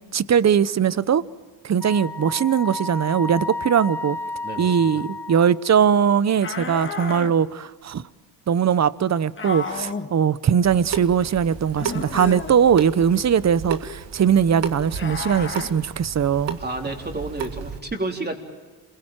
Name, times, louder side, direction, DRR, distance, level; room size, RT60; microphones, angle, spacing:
voice 1, 0.1-1.2 1.6-4.2 4.6-8.0 8.5-16.6, right 8 dB, 40° right, 0.8 m, -20 dB
Wind instrument woodwind instrument, 1.8-5.7, left 2 dB, 5° left, 1.0 m, -32 dB
voice 2, 4.4-5.0 16.6-18.4, right 2 dB, 20° right, 3.7 m, -31 dB
sound 1, 6.4-7.3 9.4-10.1 11.7-12.6 14.9-15.7, left 4 dB, 25° left, 1.8 m, -31 dB
Water tap faucet / Sink (filling or washing) / Drip, 10.6-17.8, right 7 dB, 80° right, 2.0 m, -34 dB
27.5 x 22.5 x 9.0 m
cardioid pair, 90°, 43 cm